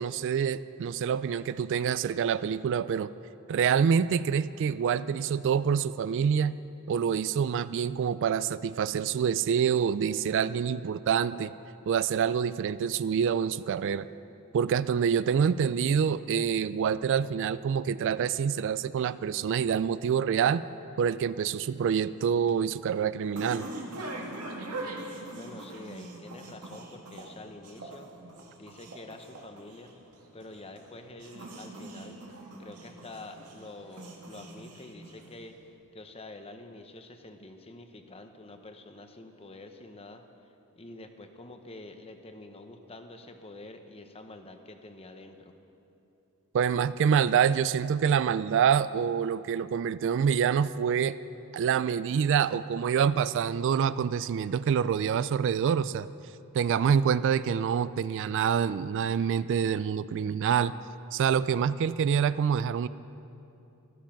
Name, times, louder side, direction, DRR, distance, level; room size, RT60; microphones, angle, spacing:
voice 1, 0.0-3.1 3.5-6.6 6.9-11.5 11.9-14.1 14.5-20.6 21.0-23.7 46.5-51.2 51.5-56.1 56.5-60.7 61.1-62.9, right 7 dB, 55° right, 16 dB, 0.3 m, -26 dB
sound 1, 22.0-35.6, right 2 dB, 85° right, 2.0 m, -43 dB
voice 2, 25.3-28.1 28.6-29.9 30.3-32.2 32.6-40.2 40.8-45.5, left 2 dB, 25° left, 6 dB, 0.9 m, -47 dB
13.5 x 13.0 x 5.9 m, 2.9 s
head